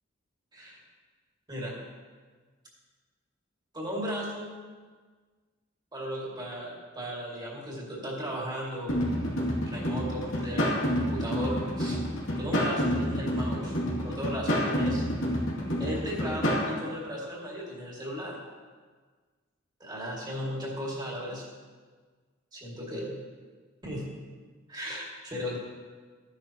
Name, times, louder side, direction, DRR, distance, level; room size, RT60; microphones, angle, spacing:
voice 1, 3.7-4.6 5.9-9.1 9.7-12.0 12.4-15.0 15.8-18.4 19.8-21.5 22.5-23.1 23.8-24.1 24.7-25.6, equal, 20° right, -4 dB, 2.5 m, -36 dB
sound 1, 8.9-16.7, equal, 85° left, 2.7 m, -29 dB
14.0 x 10.5 x 3.1 m, 1.5 s
head